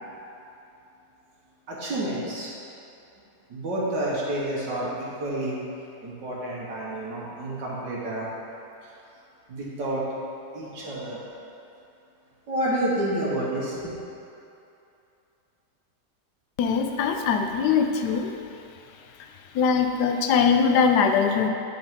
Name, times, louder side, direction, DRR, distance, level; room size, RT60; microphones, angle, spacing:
voice 1, 1.7-2.5 3.5-5.6 6.0-8.3 8.8-8.9 9.5-10.0 10.5-11.2 12.5-13.9, right 1 dB, 90° right, -7 dB, 1.9 m, -29 dB
voice 2, 16.6-18.4 19.5-21.5, left 6 dB, 75° left, 5 dB, 1.1 m, -21 dB
8.9 x 5.4 x 3.6 m, 2.7 s
omnidirectional pair, 1.9 m